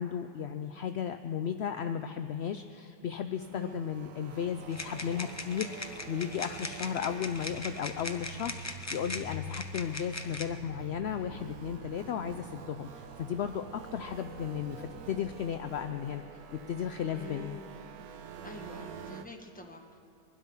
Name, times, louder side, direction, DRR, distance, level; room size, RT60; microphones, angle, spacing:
voice 1, 0.0-16.2 16.5-17.6, left 8 dB, 70° left, 8 dB, 0.6 m, -35 dB
sound 1, 3.0-19.3, right 7 dB, 80° right, 1.3 m, -48 dB
sound 2, 4.7-10.5, left 2 dB, 25° left, 0.4 m, -41 dB
sound 3, 6.6-12.2, left 2 dB, 15° right, 3.1 m, -47 dB
voice 2, 17.1-17.7 18.4-20.0, left 1 dB, 5° left, 2 dB, 1.1 m, -46 dB
21.5 x 12.0 x 5.6 m, 2.4 s
omnidirectional pair, 1.6 m